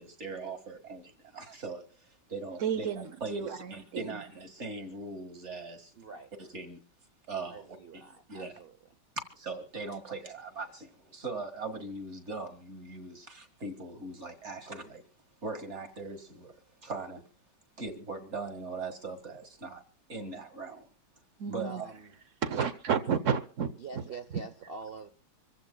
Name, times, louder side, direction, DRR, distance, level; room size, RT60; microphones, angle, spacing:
voice 1, 0.0-5.9 6.4-6.8 7.3-8.6 9.3-15.0 15.4-16.5 16.8-17.2 17.8-19.8 20.1-20.9 21.5-21.9, right 3 dB, 35° right, 2.0 m, -40 dB
voice 2, 2.6-4.2 21.4-21.8 22.4-24.0, right 7 dB, 55° right, 0.8 m, -32 dB
voice 3, 5.9-6.3 7.5-8.8 21.6-22.2 23.8-25.1, right 4 dB, 85° right, 0.5 m, -45 dB
26.0 x 15.0 x 2.3 m
omnidirectional pair, 2.3 m